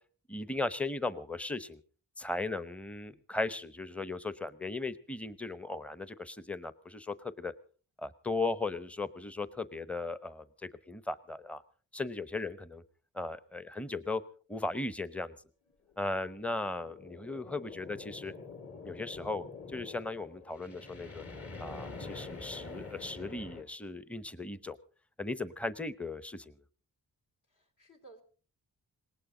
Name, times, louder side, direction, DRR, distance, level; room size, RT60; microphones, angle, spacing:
voice 1, 0.3-1.8 2.2-7.5 8.0-11.6 11.9-12.8 13.1-14.2 14.5-15.3 16.0-18.3 18.8-21.2 21.6-24.8 25.2-26.5, left 3 dB, 5° left, 15 dB, 0.8 m, -37 dB
sound 1, 15.9-23.6, left 4 dB, 40° left, 2.7 m, -46 dB
voice 2, 27.5-28.2, right 3 dB, 60° left, 4 dB, 2.8 m, -57 dB
19.0 x 19.0 x 3.8 m, 0.39 s
cardioid pair, 90°, 35 cm